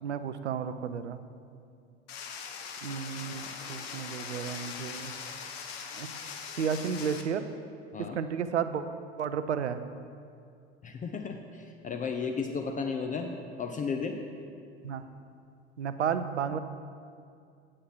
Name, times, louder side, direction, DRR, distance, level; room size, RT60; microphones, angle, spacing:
voice 1, 0.0-1.2 2.8-5.1 6.0-6.1 6.6-7.5 8.0-8.8 9.2-9.8 14.8-15.0 15.8-16.6, right 7 dB, 80° right, 11 dB, 0.5 m, -32 dB
sound 1, 2.1-7.2, left 6 dB, 60° left, 0.9 m, -41 dB
voice 2, 10.8-14.2, left 5 dB, 25° left, 4 dB, 0.6 m, -34 dB
8.7 x 7.5 x 4.5 m, 2.4 s
figure-of-eight pair, 70°, 34 cm